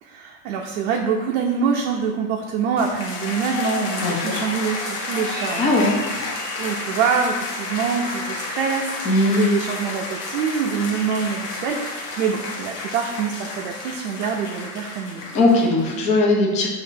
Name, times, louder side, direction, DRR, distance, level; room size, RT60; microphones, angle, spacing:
voice 1, 0.0-5.7 6.6-15.2, right 6 dB, 60° right, 1 dB, 0.5 m, -25 dB
sound 1, 2.8-16.0, left 3 dB, 85° left, 1.0 m, -31 dB
voice 2, 4.0-4.4 5.6-5.9 9.0-9.5 15.3-16.7, left 2 dB, 15° left, -1 dB, 0.4 m, -19 dB
6.0 x 2.5 x 2.7 m, 1.2 s
supercardioid pair, 135°, 45 cm